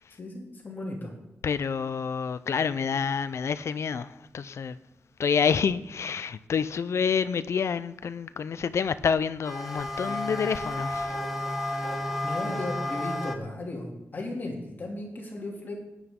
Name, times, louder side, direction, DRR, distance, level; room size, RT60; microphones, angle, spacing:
voice 1, 0.2-1.1 10.0-10.2 12.2-15.8, left 2 dB, 40° left, 2.8 m, -36 dB
voice 2, 1.4-4.8 5.2-11.2 11.9-12.0, left 6 dB, 65° left, 0.5 m, -28 dB
sound 1, 9.4-13.4, left 1 dB, 5° right, 1.3 m, -32 dB
19.5 x 10.0 x 3.8 m
wide cardioid pair, 160°, 5 cm